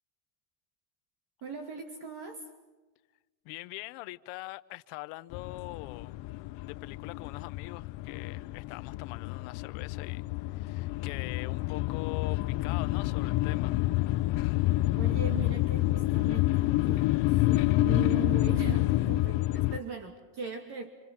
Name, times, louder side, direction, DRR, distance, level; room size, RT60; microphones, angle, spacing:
voice 1, 1.4-2.5 15.0-20.9, right 6 dB, 50° right, 2.7 m, -40 dB
voice 2, 3.4-6.1 6.6-13.8 14.4-14.7, left 20 dB, 90° left, 1.0 m, -43 dB
sound 1, 5.3-19.8, left 18 dB, 60° left, 0.7 m, -28 dB
28.0 x 26.5 x 5.7 m
cardioid pair, 140°, 50 cm